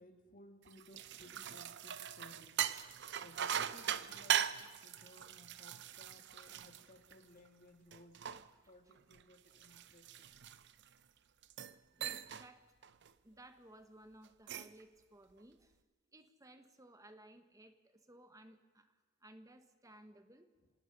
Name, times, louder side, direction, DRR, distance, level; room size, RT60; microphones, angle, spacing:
voice 1, 0.0-2.6 3.2-8.2 8.7-10.3 19.9-20.0, left 1 dB, 45° left, 3 dB, 2.6 m, -61 dB
sound 1, 0.7-7.5 7.9-10.9 11.4-11.8 12.0-12.5 12.8-13.1 14.2-14.8, right 9 dB, 60° right, 0.7 m, -40 dB
voice 2, 12.0-12.6 13.2-15.8 16.1-20.5, right 1 dB, 15° right, 8 dB, 1.3 m, -59 dB
27.0 x 18.5 x 5.4 m, 1.3 s
head